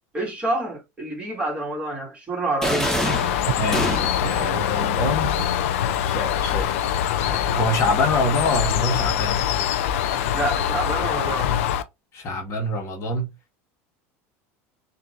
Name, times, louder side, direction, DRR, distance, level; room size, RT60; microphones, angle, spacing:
voice 1, 0.1-3.0 10.3-11.5, right 2 dB, 15° right, 2.4 m, -27 dB
sound 1, 2.6-4.4, left 1 dB, 5° left, 1.2 m, -25 dB
Bird, 3.0-11.8, left 10 dB, 85° left, 0.6 m, -24 dB
sound 2, 3.4-5.6, right 17 dB, 65° right, 0.4 m, -32 dB
voice 2, 3.6-5.4 6.0-6.8 7.2-9.4 10.1-10.2 12.1-13.3, left 2 dB, 45° left, 1.3 m, -26 dB
6.6 x 2.7 x 2.4 m
supercardioid pair, 120°, 7 cm